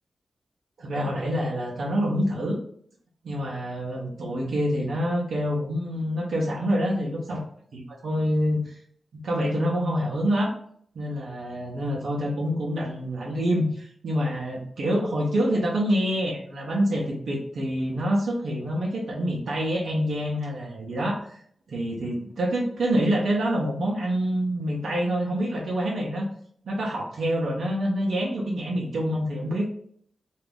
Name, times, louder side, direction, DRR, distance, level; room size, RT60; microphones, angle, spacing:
voice 1, 0.8-2.6 3.2-7.4 7.7-8.8 9.2-10.5 10.9-21.4 21.7-26.3 26.6-29.7, equal, 85° right, -3 dB, 0.5 m, -26 dB
2.4 x 2.2 x 3.3 m, 0.63 s
cardioid pair, 45°, 0 cm